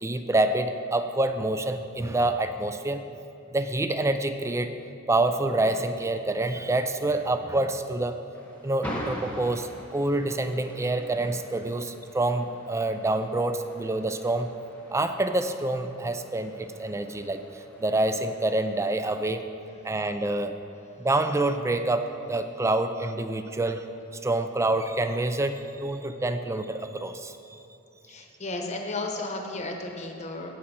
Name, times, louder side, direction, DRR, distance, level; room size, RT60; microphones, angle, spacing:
voice 1, 0.0-3.0 3.5-4.7 5.1-8.2 8.6-14.5 14.9-17.4 17.8-19.4 19.8-20.6 21.0-23.8 24.2-27.6, right 2 dB, 15° right, 8 dB, 0.4 m, -27 dB
sound 1, 8.3-19.3, equal, 5° left, 1.3 m, -43 dB
voice 2, 28.1-30.5, left 2 dB, 35° left, 3 dB, 1.0 m, -34 dB
17.0 x 6.2 x 4.3 m, 2.7 s
head